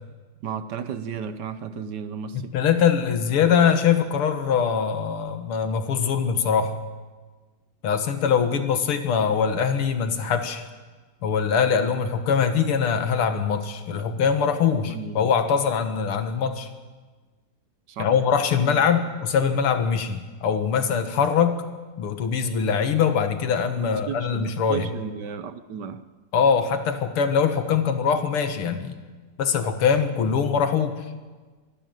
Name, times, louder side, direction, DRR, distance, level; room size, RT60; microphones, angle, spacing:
voice 1, 0.4-2.5 14.9-15.3 17.9-18.1 23.8-26.0, right 7 dB, 65° right, 12 dB, 1.3 m, -34 dB
voice 2, 2.3-6.7 7.8-10.6 11.2-16.7 18.0-21.6 22.0-24.9 26.3-29.0 29.4-31.0, left 6 dB, 90° left, 8 dB, 2.4 m, -22 dB
24.0 x 12.0 x 9.3 m, 1.3 s
omnidirectional pair, 2.3 m